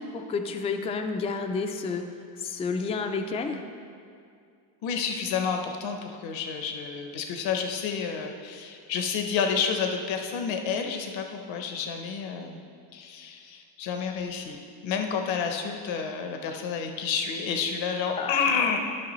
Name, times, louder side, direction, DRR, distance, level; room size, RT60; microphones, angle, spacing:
voice 1, 0.0-2.0 2.4-3.6 18.2-18.4, left 4 dB, 15° left, 5 dB, 0.3 m, -30 dB
voice 2, 4.8-12.6 12.9-18.8, left 6 dB, 75° left, 4 dB, 0.9 m, -30 dB
13.0 x 5.9 x 3.0 m, 2.3 s
cardioid pair, 130°, 46 cm